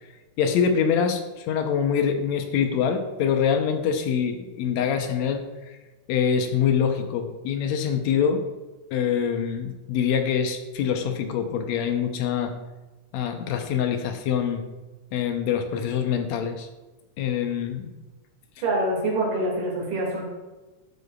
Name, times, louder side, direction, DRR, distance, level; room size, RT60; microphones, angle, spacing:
voice 1, 0.4-5.8 6.1-8.4 8.9-12.5 13.1-14.6 15.1-16.7 17.2-17.9, left 7 dB, 75° left, 6 dB, 1.9 m, -25 dB
voice 2, 18.6-20.2, right 1 dB, 90° right, -2 dB, 3.9 m, -25 dB
11.5 x 8.1 x 2.4 m, 1.2 s
omnidirectional pair, 3.6 m